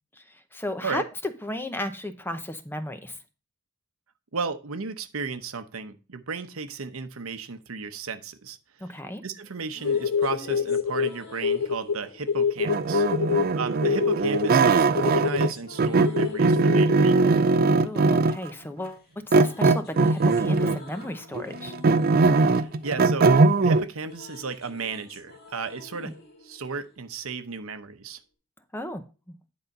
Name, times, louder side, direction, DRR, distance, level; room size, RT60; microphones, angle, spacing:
voice 1, 0.5-1.0 1.4-3.2 8.8-9.2 13.3-13.5 17.8-21.7 26.0-26.1 28.7-29.0 29.3-29.4, left 1 dB, 10° left, 9 dB, 0.7 m, -34 dB
voice 2, 4.3-8.9 9.2-13.0 13.6-17.3 22.4-23.3 23.6-26.1 26.4-28.2, right 4 dB, 75° right, 9 dB, 0.9 m, -34 dB
sound 1, 9.4-13.6 14.5-18.7 19.0-27.5, left 3 dB, 50° left, 1.7 m, -48 dB
sound 2, 9.8-12.0 12.3-13.5 13.8-15.5 16.0-17.0, left 6 dB, 90° left, 0.6 m, -25 dB
sound 3, 12.6-15.5 15.8-18.5 19.3-20.9 21.3-23.8, right 3 dB, 45° right, 0.5 m, -20 dB
10.0 x 4.1 x 5.3 m, 0.32 s
head